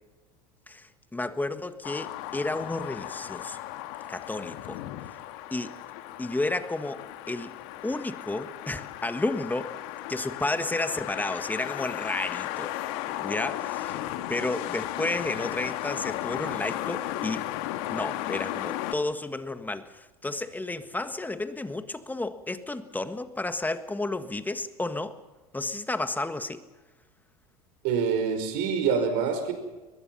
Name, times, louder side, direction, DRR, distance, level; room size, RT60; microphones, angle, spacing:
voice 1, 0.7-3.6 4.1-4.8 5.5-5.7 6.2-7.5 7.8-9.8 10.1-12.7 13.2-17.5 17.9-25.2 25.5-26.6, left 2 dB, 10° left, 1.6 m, -32 dB
sound 1, 1.8-18.9, left 14 dB, 60° left, 1.6 m, -35 dB
voice 2, 27.8-29.5, right 6 dB, 60° right, 5.2 m, -26 dB
22.5 x 21.5 x 5.7 m
hypercardioid pair, 85°, 19 cm